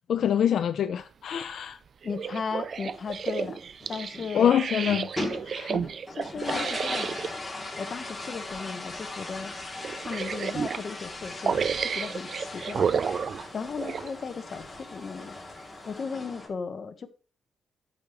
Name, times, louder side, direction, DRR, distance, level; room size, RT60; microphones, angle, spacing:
voice 1, 0.1-1.8 4.3-5.1 5.4-5.8, left 9 dB, 60° left, 0.6 m, -25 dB
voice 2, 2.0-3.6 3.9-4.5 5.7-7.4 7.8-9.5 10.0-11.6 11.8-12.9 13.5-15.4 15.8-17.1, left 5 dB, 35° left, 1.1 m, -36 dB
sound 1, 2.0-7.3 8.4-8.6 9.0-9.1 9.8-10.9 11.4-14.1 14.8-14.9, right 6 dB, 45° right, 0.3 m, -31 dB
Mann auf kleiner Toilette, 2.9-4.3 4.7-5.6 5.8-16.5, left 2 dB, 5° left, 3.1 m, -38 dB
13.0 x 6.6 x 3.1 m
wide cardioid pair, 160°, 0 cm